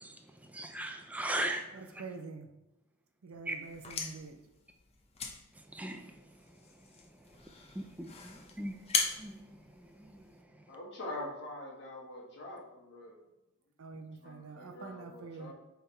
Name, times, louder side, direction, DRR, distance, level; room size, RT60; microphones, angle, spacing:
voice 1, 0.0-2.1 3.5-3.6 5.5-10.8, right 1 dB, 5° right, 0.4 m, -41 dB
voice 2, 2.0-2.5 3.2-4.4 13.8-15.5, right 4 dB, 70° right, 0.6 m, -45 dB
sound 1, 3.6-10.4, left 4 dB, 30° left, 0.6 m, -39 dB
voice 3, 10.7-13.2 14.2-15.5, left 1 dB, 55° left, 1.4 m, -44 dB
6.6 x 3.4 x 4.4 m
head